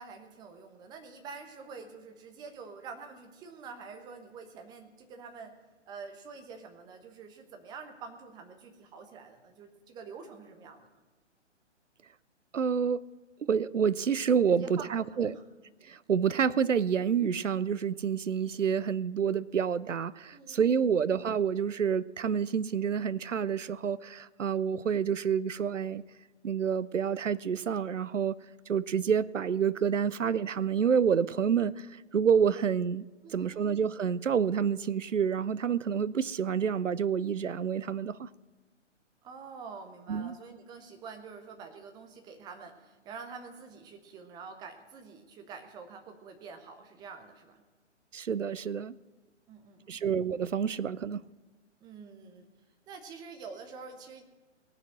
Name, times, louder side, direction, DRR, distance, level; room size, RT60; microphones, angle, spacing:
voice 1, 0.0-5.6 5.9-10.9 14.5-15.4 20.3-20.9 33.2-33.8 39.2-47.6 49.5-50.1 51.8-52.5 52.9-54.2, right 5 dB, 10° right, 5 dB, 0.7 m, -47 dB
voice 2, 12.5-13.0 13.4-15.4 15.8-26.0 26.4-28.4 28.7-33.1 33.3-38.3 40.1-40.3 48.1-48.9 49.9-51.2, right 7 dB, 85° right, 20 dB, 0.5 m, -28 dB
18.5 x 6.3 x 7.6 m, 1.3 s
figure-of-eight pair, 125°, 36 cm